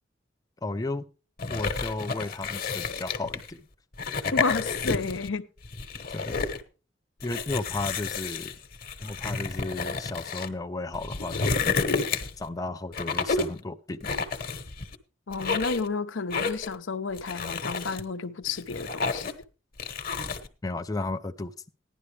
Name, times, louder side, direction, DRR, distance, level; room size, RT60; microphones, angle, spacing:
voice 1, 0.6-1.0 1.5-3.7 6.1-6.4 7.2-8.5 9.0-11.8 12.4-14.1 20.6-21.5, left 2 dB, 20° left, 0.5 m, -34 dB
sound 1, 1.4-3.5 3.9-5.3 5.6-6.6 7.2-10.5 10.9-12.5 12.9-13.6 14.0-15.0 15.3-15.9 16.3-16.8 17.2-18.0 18.5-19.4 19.8-20.5, left 4 dB, 50° left, 1.1 m, -30 dB
voice 2, 4.3-5.5 15.3-19.3, left 4 dB, 80° left, 0.7 m, -31 dB
15.5 x 11.0 x 3.3 m
head